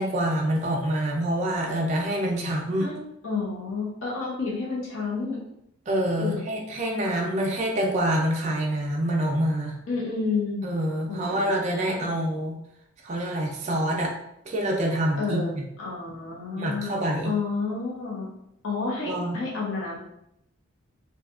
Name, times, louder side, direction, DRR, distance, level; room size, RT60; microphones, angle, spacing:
voice 1, 0.0-2.9 5.9-9.7 10.6-12.6 13.0-14.1 14.5-15.6 16.6-17.3 19.1-19.4, right 1 dB, 35° right, -1 dB, 0.3 m, -26 dB
voice 2, 3.2-5.4 6.1-6.4 9.9-10.6 11.1-11.5 11.9-12.2 15.2-16.9 17.2-18.3 18.6-20.0, left 4 dB, 70° left, -6 dB, 0.7 m, -30 dB
2.6 x 2.3 x 2.3 m, 0.78 s
head